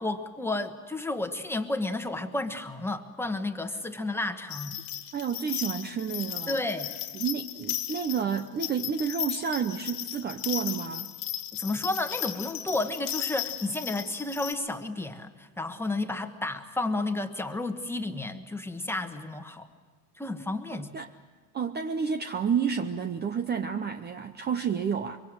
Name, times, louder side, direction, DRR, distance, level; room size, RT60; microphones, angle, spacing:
voice 1, 0.0-4.8 6.5-6.9 11.5-19.7 20.2-21.0, left 2 dB, 5° left, 7 dB, 1.3 m, -32 dB
sound 1, 4.5-14.5, left 13 dB, 55° left, 1.8 m, -36 dB
voice 2, 5.1-6.6 7.1-11.1 20.7-21.1 21.5-25.2, right 6 dB, 25° right, 9 dB, 0.7 m, -30 dB
24.0 x 24.0 x 7.8 m, 1.4 s
cardioid pair, 135°, 42 cm